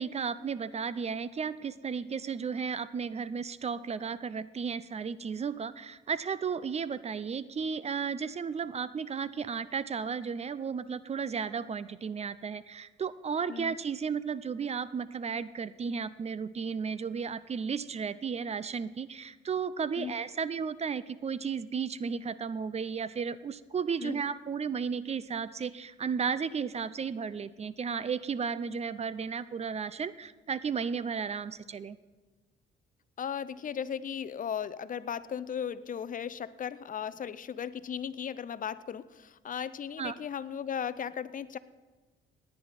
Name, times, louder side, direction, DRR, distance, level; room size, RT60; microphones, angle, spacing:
voice 1, 0.0-32.0 40.0-40.1, right 6 dB, 35° right, 16 dB, 0.5 m, -34 dB
voice 2, 33.2-41.6, left 8 dB, 40° left, 15 dB, 0.6 m, -36 dB
18.0 x 9.7 x 4.2 m, 1.3 s
cardioid pair, 90°, 20 cm